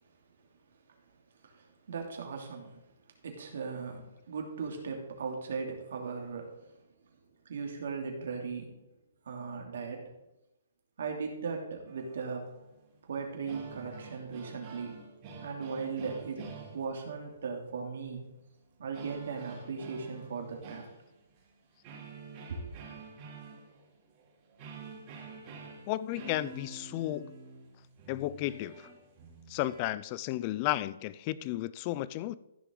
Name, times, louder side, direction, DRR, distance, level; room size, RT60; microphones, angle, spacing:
voice 1, 1.4-2.8 3.2-6.7 7.4-8.8 9.3-10.1 11.0-12.5 13.1-15.0 15.4-18.2 18.8-20.9 22.5-22.6, right 5 dB, 65° right, 2 dB, 2.8 m, -38 dB
sound 1, 11.9-13.0 13.2-17.3 18.9-21.5 21.8-29.9, right 4 dB, 30° right, 3.2 m, -49 dB
voice 2, 25.9-27.3 28.1-28.9 29.5-32.3, left 15 dB, 30° left, 18 dB, 0.4 m, -33 dB
15.0 x 6.7 x 3.9 m, 0.93 s
hypercardioid pair, 160°, 0 cm